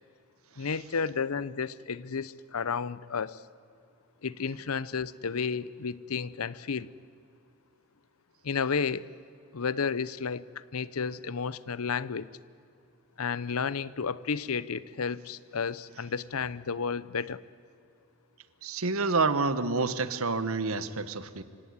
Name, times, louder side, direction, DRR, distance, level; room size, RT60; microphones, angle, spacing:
voice 1, 0.6-3.4 4.2-6.9 8.4-9.1 9.5-12.3 13.2-17.4, left 5 dB, 90° left, 18 dB, 0.7 m, -32 dB
voice 2, 18.6-21.4, right 3 dB, 75° right, 13 dB, 1.2 m, -28 dB
26.5 x 17.0 x 9.6 m, 2.5 s
head